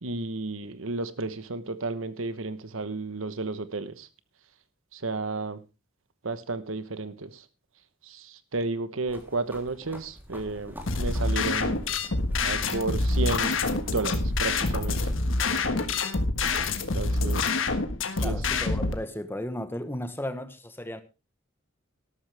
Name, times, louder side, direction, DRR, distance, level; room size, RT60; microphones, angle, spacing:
voice 1, 0.0-4.1 4.9-5.6 6.2-7.4 8.0-11.8 12.4-13.6 13.9-15.0 15.5-15.6 16.9-17.6 18.2-18.4, right 3 dB, 85° right, 1.1 m, -32 dB
sound 1, 9.1-15.6, equal, 10° right, 3.3 m, -43 dB
sound 2, 10.9-18.9, left 3 dB, 75° left, 1.5 m, -26 dB
voice 2, 18.2-21.0, left 1 dB, 10° left, 1.1 m, -35 dB
13.0 x 12.5 x 3.4 m
head